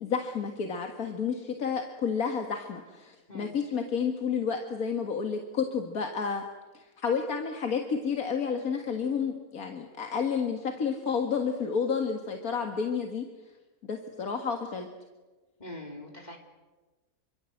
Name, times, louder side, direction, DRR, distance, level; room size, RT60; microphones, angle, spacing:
voice 1, 0.0-6.4 6.7-13.2 13.9-14.9, left 6 dB, 85° left, 4 dB, 2.2 m, -30 dB
voice 2, 15.6-16.4, left 1 dB, 30° left, 1 dB, 4.0 m, -42 dB
27.5 x 24.5 x 7.9 m, 1.2 s
omnidirectional pair, 1.5 m